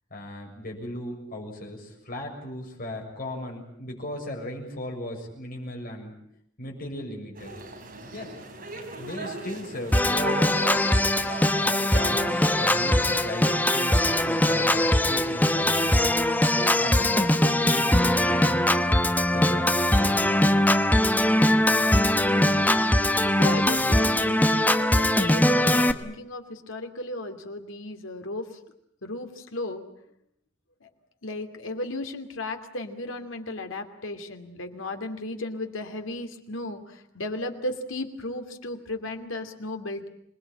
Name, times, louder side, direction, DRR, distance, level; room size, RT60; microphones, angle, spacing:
voice 1, 0.1-6.1 6.6-7.6 8.1-8.3 9.0-10.5 11.1-15.9 16.5-20.2, left 1 dB, 50° left, 2 dB, 6.8 m, -37 dB
sound 1, 7.3-19.4, right 2 dB, 50° right, 4.8 m, -41 dB
Organ, 9.9-25.9, left 1 dB, 10° left, 1.1 m, -21 dB
voice 2, 23.4-28.5 29.0-29.8 30.8-30.9 31.2-40.1, left 2 dB, 80° left, 6 dB, 2.8 m, -35 dB
26.5 x 20.5 x 8.8 m, 0.73 s
head